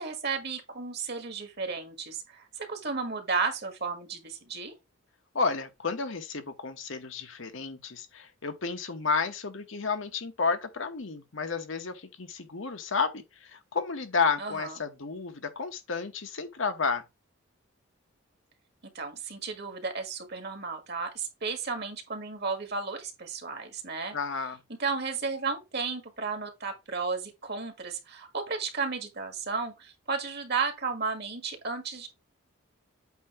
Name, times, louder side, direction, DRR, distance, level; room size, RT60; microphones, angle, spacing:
voice 1, 0.0-4.7 14.4-14.8 18.9-24.2 24.7-32.1, right 4 dB, 50° right, 1.8 m, -33 dB
voice 2, 5.3-17.0 24.1-24.6, left 4 dB, 65° left, 1.0 m, -31 dB
8.3 x 2.8 x 5.6 m
head